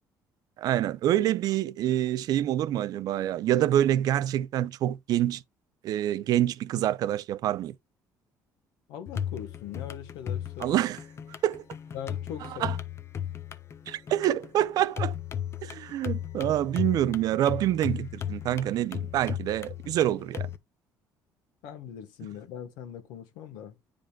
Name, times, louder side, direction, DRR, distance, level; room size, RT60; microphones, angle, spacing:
voice 1, 0.6-5.4 5.8-7.7 10.6-11.0 11.4-11.6 12.4-12.8 13.9-15.2 15.6-20.5, right 12 dB, 60° right, 0.5 m, -26 dB
voice 2, 8.9-10.8 11.9-12.7 21.6-23.7, left 9 dB, 85° left, 1.3 m, -41 dB
sound 1, 9.1-20.6, left 9 dB, 35° left, 0.6 m, -36 dB
9.1 x 5.1 x 2.3 m
cardioid pair, 110°, 7 cm